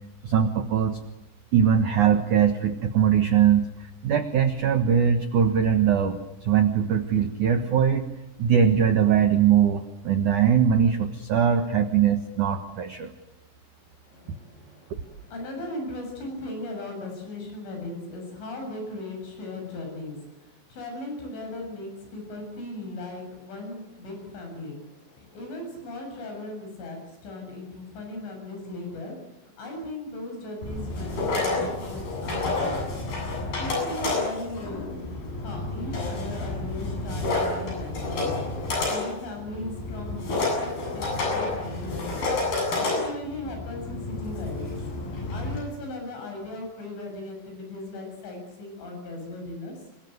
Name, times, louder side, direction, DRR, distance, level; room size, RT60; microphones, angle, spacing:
voice 1, 0.2-1.0 1.5-3.7 4.0-8.1 8.4-13.1, right 8 dB, 85° right, 8 dB, 1.7 m, -21 dB
voice 2, 14.1-32.8 33.3-35.0 35.4-38.4 38.9-44.8 45.3-49.8, left 2 dB, 70° left, 3 dB, 9.6 m, -38 dB
sound 1, 30.6-45.6, left 2 dB, 50° left, 9.7 m, -29 dB
27.5 x 23.5 x 8.0 m, 0.88 s
omnidirectional pair, 5.8 m